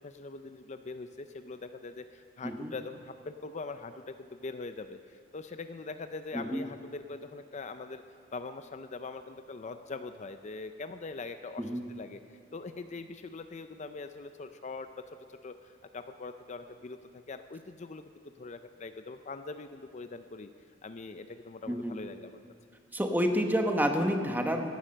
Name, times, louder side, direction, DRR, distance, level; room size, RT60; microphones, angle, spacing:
voice 1, 0.0-8.0 8.3-12.2 12.5-14.9 15.3-18.1 18.4-20.5 20.8-22.4, left 3 dB, 40° left, 9 dB, 0.5 m, -42 dB
voice 2, 22.9-24.7, equal, 10° right, 4 dB, 1.1 m, -29 dB
16.5 x 11.0 x 6.4 m, 2.2 s
head